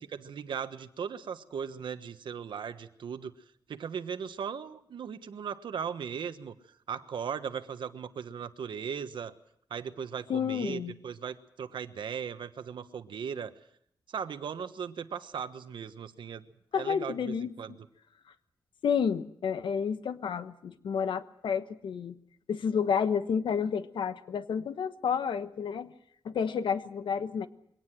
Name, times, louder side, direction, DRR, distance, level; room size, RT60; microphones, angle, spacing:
voice 1, 0.1-3.3 3.7-6.5 6.9-9.3 9.7-13.5 14.1-16.4 16.7-17.7, right 7 dB, 80° right, 10 dB, 1.3 m, -38 dB
voice 2, 10.3-10.9 16.7-17.8 18.8-22.2 22.5-25.9 26.2-27.5, left 7 dB, 85° left, 11 dB, 1.3 m, -30 dB
23.0 x 18.0 x 7.7 m, 0.71 s
wide cardioid pair, 125°, 8 cm